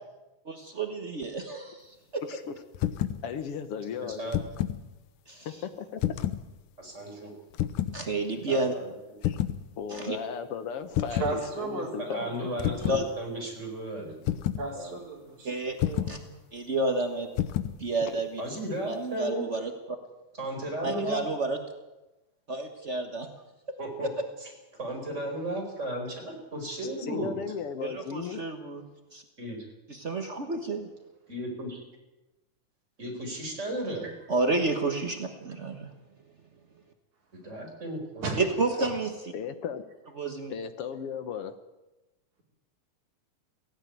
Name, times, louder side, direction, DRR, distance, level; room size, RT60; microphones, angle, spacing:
voice 1, 0.4-2.2 5.3-5.5 7.9-8.8 9.9-10.2 12.9-13.0 15.4-15.8 16.1-16.2 16.5-17.3 17.8-18.4 18.9-20.0 20.8-21.6 22.5-23.3 24.0-24.1 27.8-28.8 29.1-29.2 29.9-30.9 34.3-35.9 38.4-39.3 40.2-40.5, right 2 dB, 85° right, 5 dB, 0.6 m, -30 dB
voice 2, 2.2-2.5 2.9-4.3 5.5-6.0 9.2-9.4 9.8-12.2 18.0-18.2 27.0-28.4 39.3-39.8 40.5-41.5, left 7 dB, 60° left, 10 dB, 1.7 m, -36 dB
sound 1, 2.7-3.2 4.1-4.8 6.0-6.5 7.5-8.0 9.2-9.6 10.9-11.4 12.6-13.1 14.3-14.7 15.8-16.2 17.4-17.8, left 12 dB, 85° left, 2.4 m, -29 dB
voice 3, 6.8-7.3 8.5-8.9 12.1-14.3 14.7-14.9 18.4-19.4 20.4-21.2 23.8-24.1 24.4-27.4 29.4-29.6 31.3-31.8 33.0-34.1 37.4-38.3, right 1 dB, 20° right, 2 dB, 4.9 m, -35 dB
voice 4, 11.2-13.0 14.6-15.5 15.8-16.3 34.0-34.1 38.2-38.4, right 3 dB, 65° right, -1 dB, 5.6 m, -35 dB
17.0 x 16.5 x 9.4 m, 1.0 s
omnidirectional pair, 3.6 m